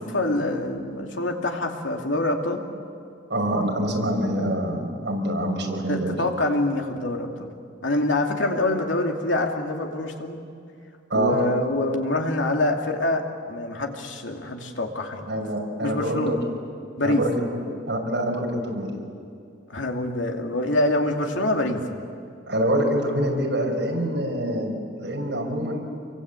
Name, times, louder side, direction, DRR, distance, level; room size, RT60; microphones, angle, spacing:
voice 1, 0.1-2.6 5.9-7.5 7.8-10.4 11.1-15.3 15.8-16.4 17.0-17.2 19.7-22.0, left 2 dB, 85° left, 2 dB, 2.7 m, -25 dB
voice 2, 3.3-6.2 11.1-11.4 15.3-16.3 17.0-17.5 17.9-18.9 22.5-24.7 25.0-25.8, right 1 dB, 65° right, 0 dB, 5.9 m, -25 dB
28.0 x 24.0 x 8.4 m, 2.3 s
head